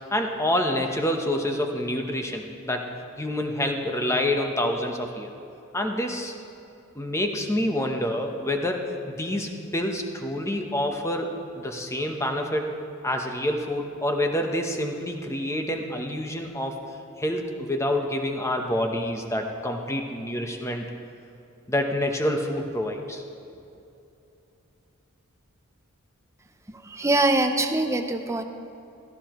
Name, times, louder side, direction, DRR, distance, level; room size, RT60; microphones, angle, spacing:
voice 1, 0.1-2.9 3.2-5.3 5.7-6.3 6.9-12.7 13.0-16.8 17.2-20.8 21.7-23.2, left 1 dB, 15° left, 3 dB, 0.9 m, -27 dB
voice 2, 26.7-28.4, right 2 dB, 15° right, 6 dB, 0.6 m, -23 dB
16.5 x 14.5 x 3.1 m, 2.8 s
head